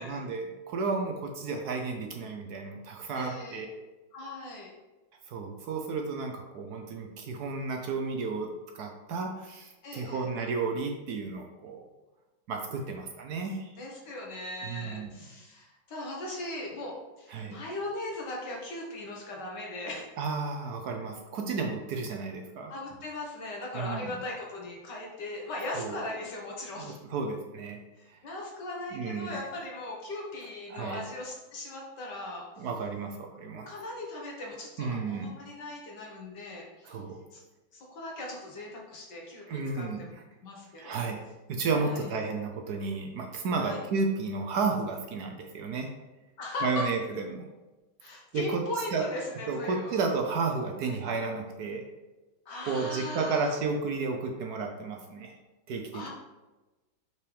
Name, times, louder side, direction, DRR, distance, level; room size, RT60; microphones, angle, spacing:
voice 1, 0.0-3.7 5.3-8.5 8.7-11.8 12.5-13.7 14.6-15.1 17.3-17.6 20.2-22.7 23.7-24.2 25.8-26.0 26.8-27.8 28.9-29.3 30.7-31.0 32.6-33.7 34.8-35.3 36.8-37.2 39.5-40.1 40.8-41.2 41.5-45.9 46.6-47.4 48.3-48.6 48.9-49.0 49.5-51.8 52.7-55.4 55.7-56.1, right 4 dB, 65° right, 3 dB, 1.1 m, -32 dB
voice 2, 3.1-3.7 4.1-4.7 9.8-10.3 13.8-20.1 22.7-27.0 28.0-32.7 33.5-37.0 37.3-37.4 37.7-40.1 40.4-41.0 41.7-42.1 43.6-43.8 46.4-46.9 48.0-50.0 50.8-51.0 52.5-53.5 55.9-56.1, left 2 dB, 65° left, -2 dB, 2.1 m, -39 dB
6.1 x 5.7 x 3.4 m, 1.1 s
omnidirectional pair, 2.0 m